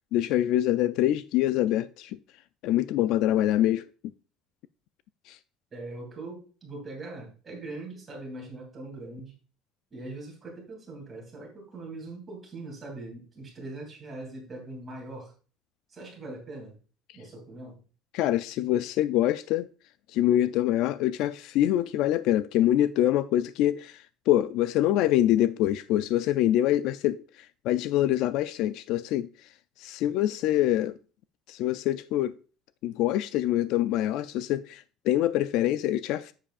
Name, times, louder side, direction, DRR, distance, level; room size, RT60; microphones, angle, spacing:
voice 1, 0.0-2.2 2.6-3.9 5.3-5.4 18.1-19.7 20.1-29.5 29.8-31.0 31.5-32.3 32.8-36.3, left 13 dB, 55° left, 0.3 m, -25 dB
voice 2, 5.7-9.4 9.9-15.3 15.9-16.8 17.1-17.8, right 2 dB, 15° right, 2.8 m, -41 dB
10.0 x 7.4 x 2.5 m
cardioid pair, 175°, 0 cm